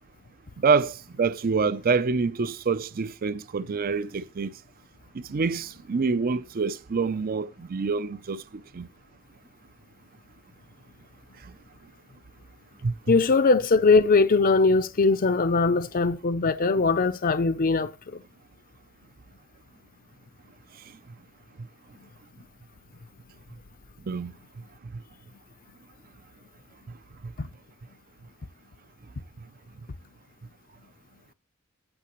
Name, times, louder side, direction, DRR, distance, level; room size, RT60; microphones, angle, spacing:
voice 1, 0.6-4.5 5.1-8.4 8.7-8.9 12.8-12.9 24.1-24.3, right 4 dB, 45° right, 0.5 m, -26 dB
voice 2, 13.1-18.2 27.4-27.5, left 4 dB, 40° left, 0.6 m, -21 dB
16.5 x 5.7 x 3.0 m
head